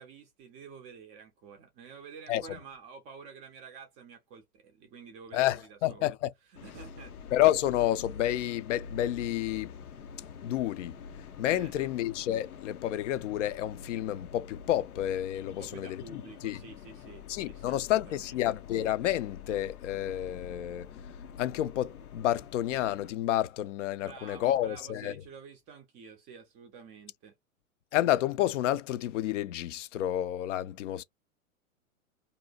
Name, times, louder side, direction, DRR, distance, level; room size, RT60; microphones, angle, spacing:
voice 1, 0.0-6.1 6.5-7.1 11.5-11.9 15.4-18.4 24.0-27.3, right 6 dB, 15° right, 0.4 m, -49 dB
voice 2, 5.3-6.3 7.3-9.7 10.4-10.9 11.4-16.6 17.3-20.9 21.4-25.1 27.9-31.0, left 13 dB, 60° left, 0.5 m, -30 dB
sound 1, 6.5-23.1, left 6 dB, 90° left, 0.8 m, -46 dB
2.7 x 2.1 x 3.9 m
hypercardioid pair, 130°, 43 cm